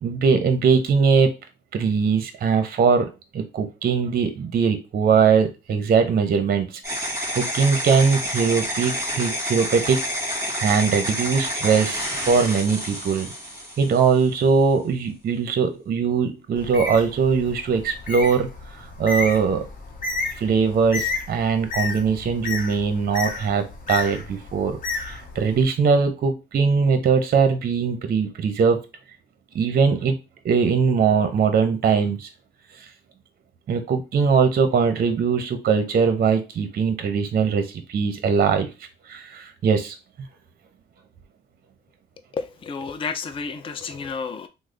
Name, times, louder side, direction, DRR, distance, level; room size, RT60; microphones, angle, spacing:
voice 1, 0.0-1.3 1.7-7.1 7.4-10.0 10.6-13.3 13.8-18.5 19.0-19.6 20.4-28.8 29.5-30.1 30.4-32.3 32.8-32.9 33.7-38.7 39.1-39.9, right 5 dB, 50° right, 0.6 m, -21 dB
sound 1, 6.8-14.3, equal, 15° right, 1.6 m, -29 dB
Bird, 16.5-25.6, left 3 dB, 45° left, 0.8 m, -32 dB
voice 2, 42.3-44.5, left 5 dB, 25° left, 0.4 m, -31 dB
3.2 x 2.0 x 3.7 m
cardioid pair, 90°, 20 cm